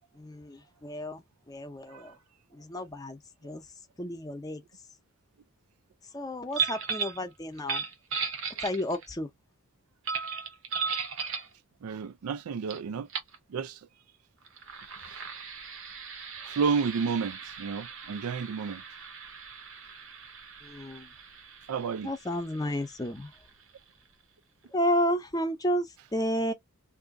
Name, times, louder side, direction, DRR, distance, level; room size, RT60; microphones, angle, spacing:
voice 1, 0.2-2.1 2.5-3.6 4.0-4.6 6.1-7.8 8.6-9.3 20.6-21.1 22.0-23.3 24.7-26.5, equal, 15° left, 0.6 m, -32 dB
sound 1, 6.5-7.2 7.6-9.1 10.1-11.5 12.7-12.8 13.1-13.4 14.4-23.7, right 6 dB, 60° right, 0.9 m, -37 dB
voice 2, 11.8-13.1 13.5-13.8 16.4-18.8 21.7-22.1, right 5 dB, 90° right, 0.4 m, -31 dB
2.7 x 2.4 x 3.6 m
head